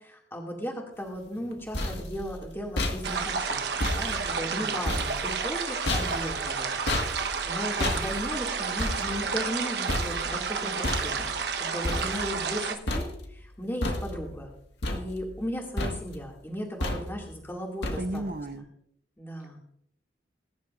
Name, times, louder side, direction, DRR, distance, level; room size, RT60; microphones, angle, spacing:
voice 1, 0.0-3.6 3.9-14.5 14.9-18.2 18.5-18.6 19.2-19.6, equal, 15° left, -1 dB, 2.2 m, -36 dB
sound 1, 1.4-12.6 12.9-13.5 13.8-14.5 14.8-15.5 15.8-16.3 16.8-17.3 17.8-18.4, left 1 dB, 80° left, 1.7 m, -33 dB
sound 2, 3.0-12.8, right 5 dB, 70° right, 1.1 m, -31 dB
voice 2, 4.5-4.9 18.0-18.7, right 1 dB, 50° right, 5 dB, 0.8 m, -34 dB
21.0 x 10.5 x 2.5 m, 0.71 s
head